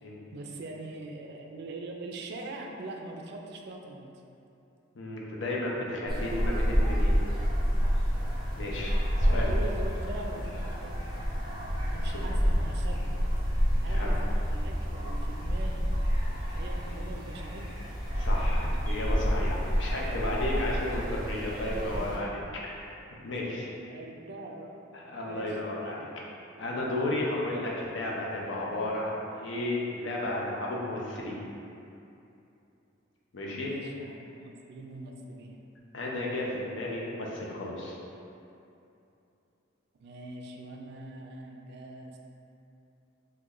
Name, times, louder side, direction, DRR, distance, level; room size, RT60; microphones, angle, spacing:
voice 1, 0.3-4.2 9.2-10.5 10.8-11.2 11.8-13.3 13.8-14.2 14.5-15.9 16.6-17.7 19.9-20.2 21.4-22.3 23.9-24.8 25.3-26.1 33.5-35.6 40.0-42.2, right 2 dB, 55° right, 1 dB, 0.3 m, -42 dB
voice 2, 5.0-7.2 8.6-9.5 12.1-12.2 13.9-14.1 18.2-23.0 23.2-23.7 24.9-26.1 26.6-31.4 33.3-33.7 35.9-37.9, left 1 dB, 65° left, -3 dB, 0.5 m, -33 dB
sound 1, 6.1-22.2, equal, 25° right, 0.6 m, -28 dB
3.0 x 2.2 x 3.6 m, 2.8 s
head